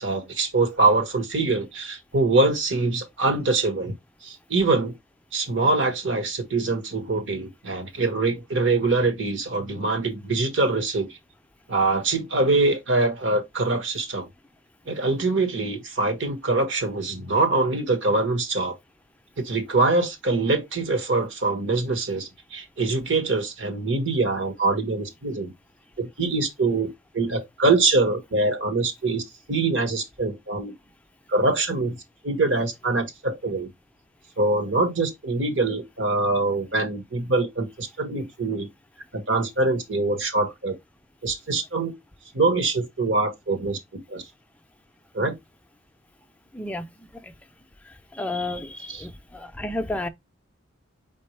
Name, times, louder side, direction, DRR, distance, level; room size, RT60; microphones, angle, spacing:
voice 1, 0.0-4.0 4.2-4.9 5.3-11.2 11.7-14.3 14.9-18.8 19.4-25.5 26.0-29.2 29.5-30.7 31.3-32.0 32.2-33.7 34.4-38.7 39.1-40.8 41.2-41.9 42.3-44.2 45.1-45.3 48.9-49.1, right 3 dB, 70° right, 1.3 m, -24 dB
voice 2, 48.2-50.1, left 2 dB, 5° left, 0.4 m, -31 dB
4.3 x 3.9 x 3.2 m
head